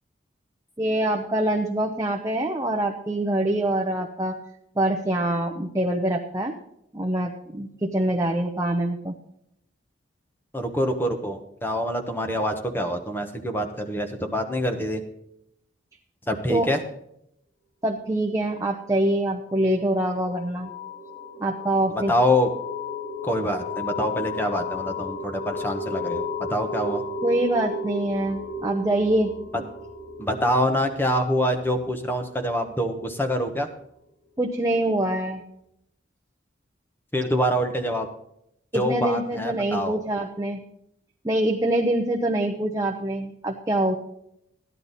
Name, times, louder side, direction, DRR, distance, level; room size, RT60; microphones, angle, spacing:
voice 1, 0.8-4.4 4.8-6.5 6.9-9.1 16.5-16.7 17.8-20.7 21.4-22.1 27.2-29.3 34.4-35.4 38.7-40.6 41.2-44.0, right 1 dB, 15° right, 0 dB, 0.8 m, -25 dB
voice 2, 10.5-15.0 16.3-16.8 21.9-22.5 23.2-27.0 29.5-29.6 30.2-33.7 37.1-38.1 38.7-40.0, equal, 10° left, 6 dB, 1.1 m, -25 dB
sound 1, 19.4-33.8, left 3 dB, 90° left, 3.2 m, -34 dB
14.5 x 10.5 x 4.1 m, 0.77 s
head